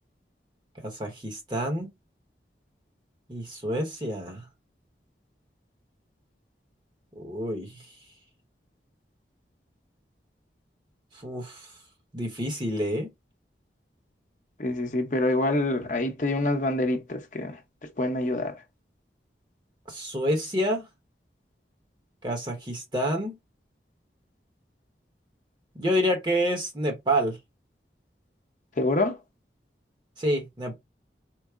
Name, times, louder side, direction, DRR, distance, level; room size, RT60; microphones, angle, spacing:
voice 1, 0.8-1.9 3.3-4.4 7.2-7.7 11.2-11.7 12.1-13.1 19.9-20.8 22.2-23.3 25.8-27.4 30.2-30.8, equal, 25° right, 0.9 m, -28 dB
voice 2, 14.6-17.6 18.0-18.6 28.8-29.2, left 2 dB, 45° left, 0.8 m, -26 dB
4.6 x 2.1 x 3.5 m
head